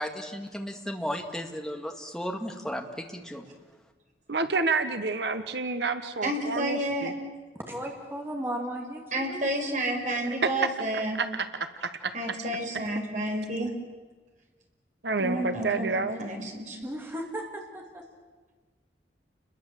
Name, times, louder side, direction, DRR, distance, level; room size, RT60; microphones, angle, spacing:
voice 1, 0.0-3.5, equal, 5° left, 3 dB, 2.2 m, -35 dB
voice 2, 4.3-7.1 10.2-10.7 11.1-12.1 15.0-16.2, right 4 dB, 65° right, 10 dB, 1.2 m, -29 dB
voice 3, 6.2-7.1 9.1-11.2 12.1-13.7 15.2-15.9 16.2-16.8, right 1 dB, 45° right, 2 dB, 5.1 m, -30 dB
voice 4, 7.5-9.5 16.8-18.0, right 1 dB, 15° right, 1 dB, 2.4 m, -36 dB
29.5 x 22.0 x 7.6 m, 1.3 s
head